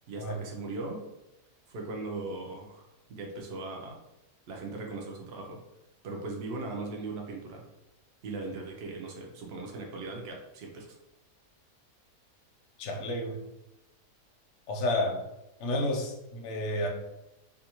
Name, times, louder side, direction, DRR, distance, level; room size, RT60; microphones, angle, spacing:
voice 1, 0.1-1.1 1.7-4.0 4.5-5.6 6.0-7.7 8.2-11.0, right 3 dB, 85° right, 1 dB, 0.5 m, -39 dB
voice 2, 12.8-13.4 14.7-15.2 15.6-16.9, left 1 dB, 60° left, 1 dB, 0.8 m, -30 dB
2.6 x 2.4 x 2.9 m, 0.92 s
omnidirectional pair, 1.7 m